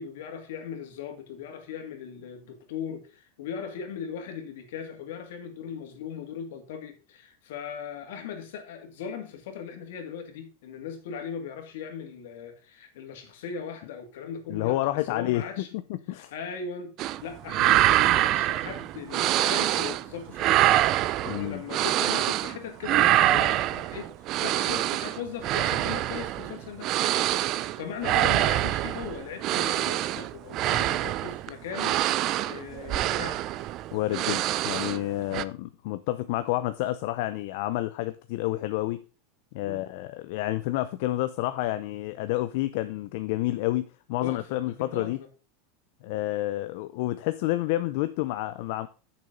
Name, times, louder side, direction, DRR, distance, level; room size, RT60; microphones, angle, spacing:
voice 1, 0.0-15.7 16.1-20.6 21.2-26.9 27.8-33.4 39.6-39.8 44.2-45.2, left 7 dB, 70° left, 5 dB, 2.6 m, -39 dB
voice 2, 14.5-15.4 15.7-16.3 21.2-21.6 28.1-28.2 33.9-39.0 39.5-43.8 44.1-45.2 46.0-48.9, left 16 dB, 50° left, 11 dB, 0.6 m, -29 dB
sound 1, 17.0-17.2 17.5-20.1 20.3-22.6 22.8-35.1 35.3-35.4, right 14 dB, 35° right, 0.4 m, -25 dB
8.7 x 6.9 x 5.2 m, 0.34 s
supercardioid pair, 170°, 0 cm